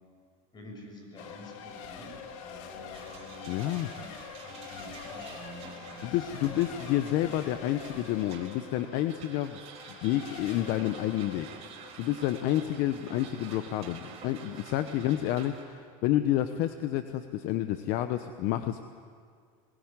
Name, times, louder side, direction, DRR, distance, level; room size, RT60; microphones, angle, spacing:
voice 1, 0.5-3.5 3.9-6.6 11.1-11.2 12.6-12.8 14.9-15.1, left 1 dB, 25° left, 2 dB, 6.6 m, -48 dB
Race car auto racing / Accelerating revving vroom / Mechanisms, 1.2-13.7, left 7 dB, 70° left, 2.5 m, -46 dB
sound 1, 2.9-15.6, right 7 dB, 35° right, 4.1 m, -49 dB
voice 2, 3.5-3.9 6.0-9.6 10.0-11.5 12.0-18.8, left 13 dB, 55° left, 9 dB, 1.0 m, -29 dB
21.5 x 20.5 x 9.1 m, 2.1 s
supercardioid pair, 135°, 17 cm